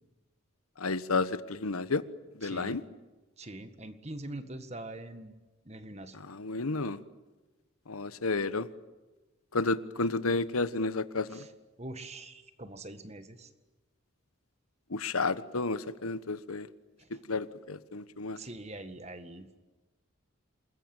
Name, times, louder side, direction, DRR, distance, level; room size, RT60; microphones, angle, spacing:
voice 1, 0.8-2.0 2.4-2.8 6.2-7.0 7.9-8.7 9.5-11.4 14.9-16.7 17.3-18.4, left 3 dB, 90° left, 14 dB, 1.2 m, -31 dB
voice 2, 2.4-2.8 3.4-5.3 5.7-6.2 11.3-11.5 11.8-13.5 17.0-17.2 18.4-19.6, right 2 dB, 30° right, 9 dB, 1.8 m, -43 dB
28.0 x 21.5 x 9.0 m, 1.2 s
head